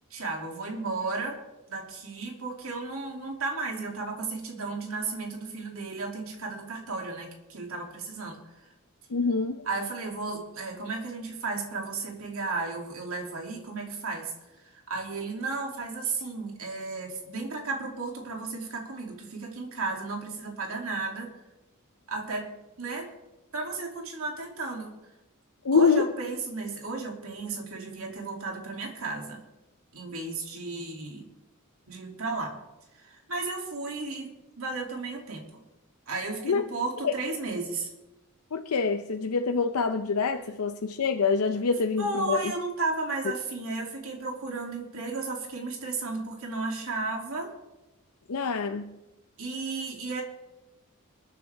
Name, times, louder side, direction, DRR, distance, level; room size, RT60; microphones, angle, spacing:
voice 1, 0.1-1.4 1.7-8.4 9.6-14.3 14.7-21.3 22.1-22.5 22.8-23.1 23.5-24.9 25.7-29.4 29.9-31.2 31.9-32.6 33.0-34.3 34.6-35.6 36.1-37.9 42.0-47.5 49.4-50.2, right 3 dB, 70° right, 1 dB, 2.7 m, -34 dB
voice 2, 9.1-9.6 25.6-26.0 36.4-36.6 37.0-37.1 38.5-42.5 48.3-48.9, left 5 dB, 85° left, 6 dB, 0.6 m, -25 dB
27.0 x 9.4 x 3.5 m, 1.0 s
head